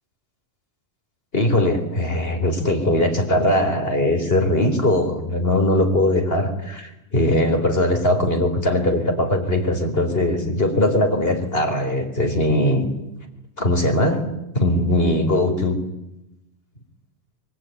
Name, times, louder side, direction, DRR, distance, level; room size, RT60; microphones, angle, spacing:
voice 1, 1.3-12.9 13.6-14.3 14.5-15.8, left 1 dB, 60° left, 5 dB, 4.5 m, -20 dB
24.5 x 23.5 x 9.6 m, 0.93 s
omnidirectional pair, 1.2 m